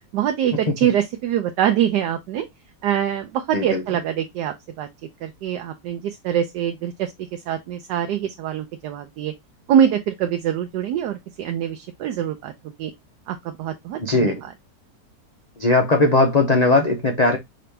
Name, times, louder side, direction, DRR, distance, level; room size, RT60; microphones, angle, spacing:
voice 1, 0.1-2.5 2.8-4.9 5.2-9.3 9.7-12.5 12.8-12.9 13.3-14.4, right 10 dB, 80° right, 1.2 m, -24 dB
voice 2, 14.0-14.4 15.6-17.4, left 2 dB, 80° left, 0.3 m, -18 dB
5.1 x 2.9 x 3.2 m
omnidirectional pair, 1.8 m